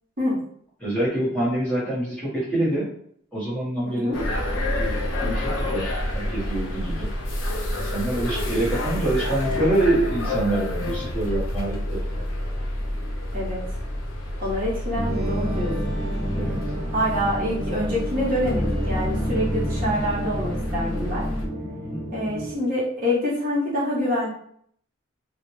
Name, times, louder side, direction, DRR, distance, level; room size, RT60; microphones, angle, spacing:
voice 1, 0.8-2.9 3.3-4.1 4.7-7.1 7.8-12.2 16.3-16.6 21.9-22.0, right 1 dB, 5° left, -9 dB, 1.0 m, -26 dB
voice 2, 3.8-4.2 13.3-13.6 14.4-15.9 16.9-21.2 22.1-24.3, equal, 45° right, -7 dB, 0.8 m, -26 dB
sound 1, 4.1-21.5, left 1 dB, 80° left, 0.5 m, -28 dB
sound 2, 15.0-22.5, equal, 20° right, 0.5 m, -30 dB
2.1 x 2.1 x 3.0 m, 0.65 s
head